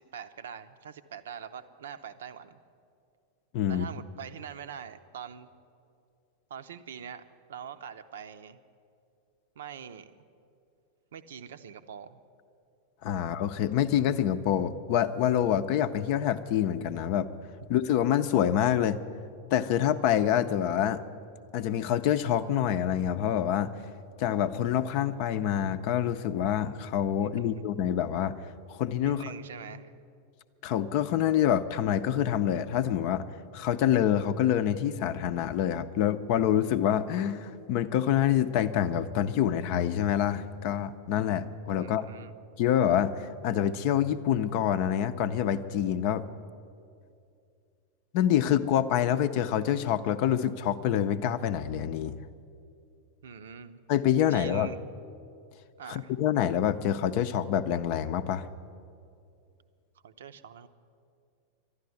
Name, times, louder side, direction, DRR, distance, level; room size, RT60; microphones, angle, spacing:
voice 1, 0.0-2.6 3.7-5.5 6.5-8.6 9.6-10.2 11.1-12.2 27.4-27.7 29.1-29.9 41.8-42.3 53.2-53.8 54.3-54.8 55.8-56.1 60.0-60.7, right 7 dB, 60° right, 12 dB, 0.6 m, -44 dB
voice 2, 3.5-3.9 13.0-17.3 17.7-19.0 19.5-21.0 21.5-23.7 24.2-28.4 28.7-29.2 30.6-33.3 33.5-42.1 42.6-46.2 48.1-52.1 53.9-54.7 55.9-58.5, left 10 dB, 45° left, 11 dB, 0.6 m, -26 dB
12.0 x 11.5 x 9.6 m, 2.4 s
figure-of-eight pair, 90°, 0 cm